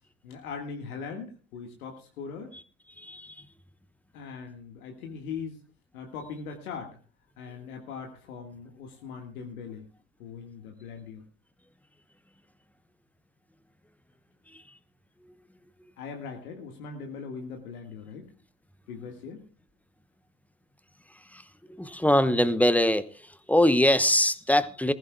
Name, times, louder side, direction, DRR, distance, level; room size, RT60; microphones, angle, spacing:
voice 1, 0.2-2.5 4.1-5.6 5.9-7.0 7.4-9.9 10.2-11.2 16.0-18.3 18.9-19.5, left 5 dB, 75° left, 1.9 m, -40 dB
voice 2, 3.0-3.3 14.5-14.6 21.3-21.4 21.7-23.1 23.5-24.9, left 1 dB, 5° left, 0.9 m, -22 dB
20.5 x 15.0 x 2.3 m
hypercardioid pair, 75°, 44 cm